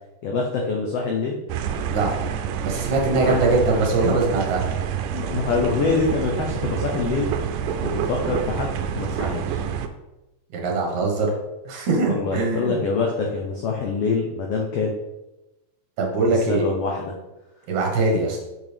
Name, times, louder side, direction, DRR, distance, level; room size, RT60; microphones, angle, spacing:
voice 1, 0.2-1.4 3.2-3.4 5.1-7.3 7.8-9.6 12.1-14.9 16.2-17.1, left 4 dB, 80° left, 0 dB, 1.3 m, -25 dB
sound 1, 1.5-9.9, right 8 dB, 80° right, 2.1 m, -27 dB
voice 2, 2.6-4.6 10.5-11.3 11.7-12.8 16.0-16.7 17.7-18.4, right 3 dB, 65° right, -1 dB, 2.6 m, -22 dB
6.5 x 6.4 x 3.5 m, 1.0 s
omnidirectional pair, 3.8 m